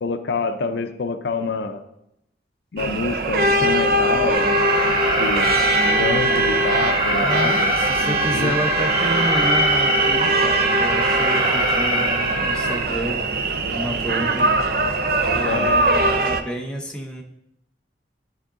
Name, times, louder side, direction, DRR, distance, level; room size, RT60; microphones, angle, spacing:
voice 1, 0.0-1.8 2.7-4.6 5.2-5.6 6.0-7.8 8.1-8.5 15.5-15.8, left 4 dB, 70° left, 8 dB, 0.5 m, -27 dB
sound 1, 2.8-16.4, right 2 dB, 55° right, 0.5 m, -21 dB
Alarm, 4.3-12.8, equal, 25° right, 1.3 m, -23 dB
voice 2, 5.8-6.2 7.2-14.5 15.3-17.2, right 1 dB, 5° left, 0 dB, 0.7 m, -29 dB
11.0 x 3.7 x 3.7 m, 0.82 s
head